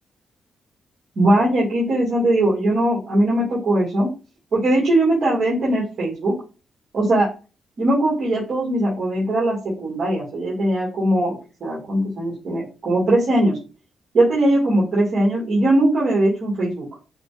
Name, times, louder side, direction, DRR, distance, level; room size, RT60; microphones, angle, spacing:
voice 1, 1.2-4.1 4.5-6.3 6.9-7.3 7.8-13.6 14.1-16.8, right 1 dB, 55° right, -6 dB, 2.1 m, -20 dB
5.8 x 2.5 x 3.3 m, 0.31 s
wide cardioid pair, 155°, 0 cm